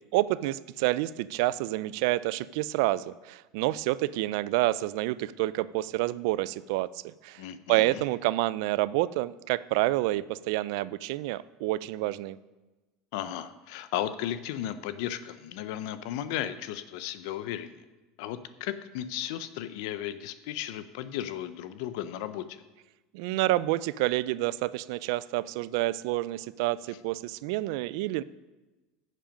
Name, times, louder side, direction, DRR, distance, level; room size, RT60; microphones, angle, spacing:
voice 1, 0.1-7.4 7.7-12.4 23.1-28.2, right 17 dB, 65° right, 19 dB, 0.3 m, -28 dB
voice 2, 7.4-8.0 13.1-17.8 18.2-22.6, left 11 dB, 65° left, 12 dB, 0.5 m, -35 dB
10.0 x 7.5 x 5.2 m, 1.1 s
cardioid pair, 165°, 2 cm